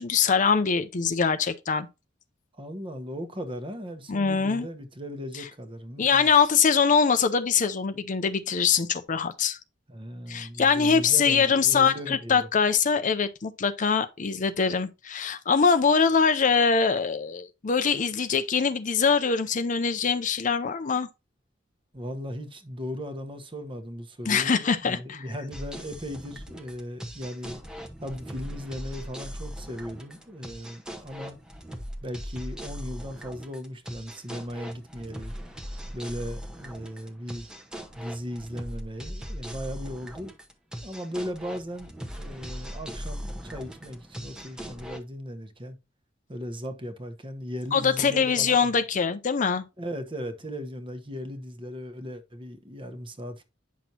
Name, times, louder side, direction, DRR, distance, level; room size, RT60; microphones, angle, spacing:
voice 1, 0.0-1.9 4.1-4.7 5.3-5.4 6.0-9.6 10.3-21.1 24.3-25.3 47.7-49.6, left 5 dB, 40° left, 0.5 m, -23 dB
voice 2, 2.6-6.3 9.9-12.5 21.9-27.6 28.0-31.4 32.0-35.3 35.9-37.5 37.9-40.3 40.8-45.8 46.3-48.7 49.8-53.4, equal, 25° right, 1.1 m, -37 dB
sound 1, 25.5-45.0, equal, 5° right, 0.9 m, -40 dB
9.3 x 6.1 x 2.8 m
head